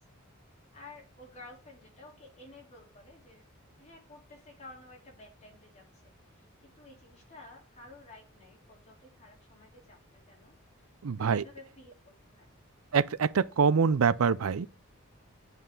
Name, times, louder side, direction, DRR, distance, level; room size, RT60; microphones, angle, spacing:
voice 1, 0.7-3.5 3.8-10.6 11.3-12.5, left 2 dB, 35° left, 3.8 m, -53 dB
voice 2, 11.0-11.4 12.9-14.7, right 5 dB, 80° right, 0.5 m, -25 dB
9.0 x 5.7 x 3.9 m
head